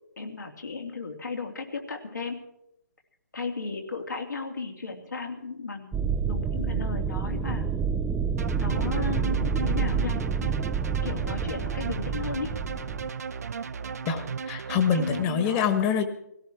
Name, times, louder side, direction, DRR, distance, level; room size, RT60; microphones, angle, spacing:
voice 1, 0.2-2.4 3.3-7.6 8.6-10.1 11.0-12.5 14.9-15.6, left 4 dB, 80° left, 3 dB, 3.0 m, -35 dB
sound 1, 5.9-13.1, right 6 dB, 10° right, 0.5 m, -28 dB
sound 2, 8.4-15.2, right 6 dB, 60° right, 0.9 m, -36 dB
voice 2, 14.1-16.1, left 7 dB, 20° left, 8 dB, 1.5 m, -25 dB
18.5 x 17.0 x 4.6 m, 0.82 s
figure-of-eight pair, 145°, 10 cm